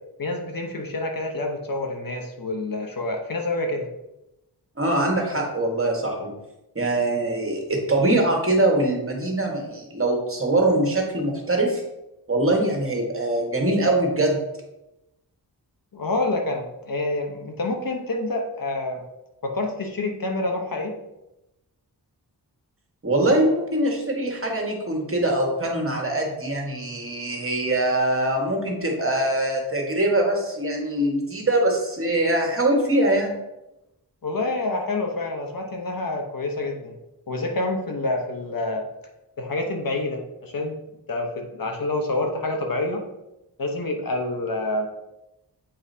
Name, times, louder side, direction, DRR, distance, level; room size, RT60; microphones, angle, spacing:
voice 1, 0.2-3.9 15.9-19.0 19.4-20.9 34.2-36.9 37.3-38.9 39.4-40.8 41.1-43.0 43.6-44.9, left 2 dB, 55° left, 3 dB, 1.0 m, -27 dB
voice 2, 4.8-6.3 6.7-11.8 12.3-14.4 23.0-33.4, right 1 dB, 35° right, 0 dB, 1.7 m, -23 dB
7.9 x 4.8 x 2.8 m, 0.92 s
cardioid pair, 65°, 40 cm